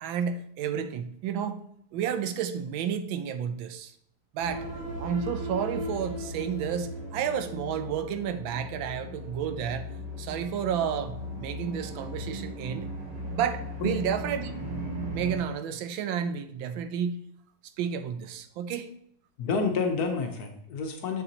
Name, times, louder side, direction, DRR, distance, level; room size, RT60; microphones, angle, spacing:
voice 1, 0.0-1.6 1.9-3.9 4.3-4.7 5.0-9.9 10.2-12.9 13.3-14.5 15.1-17.2 17.8-18.9, right 8 dB, 80° right, 10 dB, 1.4 m, -31 dB
sound 1, 4.4-15.4, equal, 60° right, 2.3 m, -37 dB
voice 2, 19.4-21.2, left 4 dB, 60° left, 4 dB, 1.2 m, -29 dB
7.0 x 6.8 x 2.8 m, 0.68 s
omnidirectional pair, 2.1 m